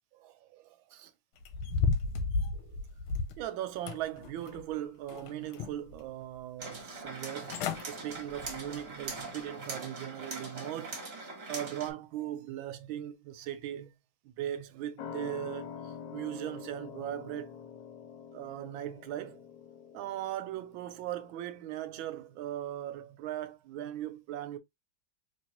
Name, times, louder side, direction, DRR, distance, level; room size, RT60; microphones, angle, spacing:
voice 1, 0.2-1.1 2.5-2.8 3.4-11.0 11.5-13.9 14.2-17.5 18.3-19.4 19.9-24.6, right 12 dB, 75° right, 1.3 m, -39 dB
sound 1, 1.4-3.4 3.9-4.7 5.1-5.9 6.4-6.5 7.2-7.3 7.5-7.8 8.3-8.6 9.0-9.1, left 4 dB, 90° left, 1.5 m, -33 dB
sound 2, 6.6-11.9, right 3 dB, 40° right, 0.9 m, -42 dB
sound 3, 15.0-22.0 22.3-22.4, left 7 dB, 70° left, 1.0 m, -46 dB
3.4 x 3.0 x 2.8 m
omnidirectional pair, 2.3 m